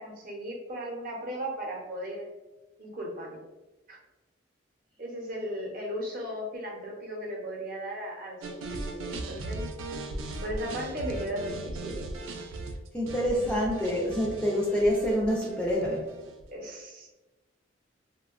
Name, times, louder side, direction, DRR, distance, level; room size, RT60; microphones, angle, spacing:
voice 1, 0.0-2.3 2.8-3.4 3.9-4.0 5.0-9.6 10.4-12.1 16.5-17.1, equal, 45° right, -2 dB, 0.7 m, -36 dB
sound 1, 8.4-16.5, right 2 dB, 90° right, 0.4 m, -38 dB
voice 2, 12.9-16.0, equal, 5° left, -5 dB, 0.3 m, -26 dB
2.8 x 2.1 x 2.4 m, 1.1 s
head